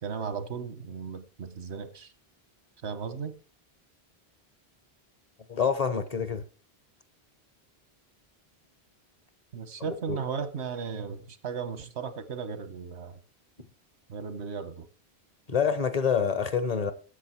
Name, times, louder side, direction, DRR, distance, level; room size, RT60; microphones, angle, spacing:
voice 1, 0.0-2.1 2.8-3.3 9.5-13.2 14.1-14.9, right 6 dB, 85° right, 1.3 m, -36 dB
voice 2, 5.5-6.4 10.1-10.2 15.5-16.9, left 6 dB, 40° left, 1.0 m, -26 dB
13.0 x 7.9 x 4.4 m
omnidirectional pair, 1.1 m